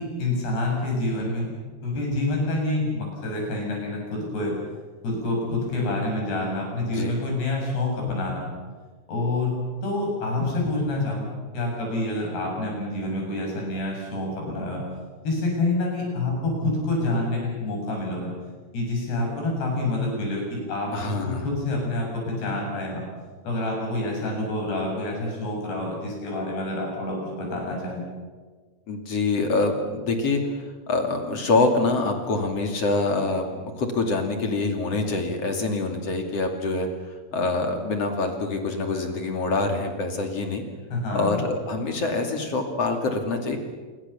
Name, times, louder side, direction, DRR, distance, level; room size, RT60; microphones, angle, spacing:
voice 1, 0.0-1.5 1.8-4.5 5.0-8.5 9.1-9.5 9.8-14.8 15.2-18.3 18.7-23.0 23.4-28.0 40.9-41.4, left 2 dB, 65° left, 0 dB, 9.8 m, -27 dB
voice 2, 20.9-21.4 28.9-30.4 30.9-36.9 37.3-40.6 41.1-43.6, left 3 dB, 40° left, 4 dB, 3.1 m, -25 dB
27.0 x 24.0 x 7.1 m, 1.4 s
omnidirectional pair, 5.0 m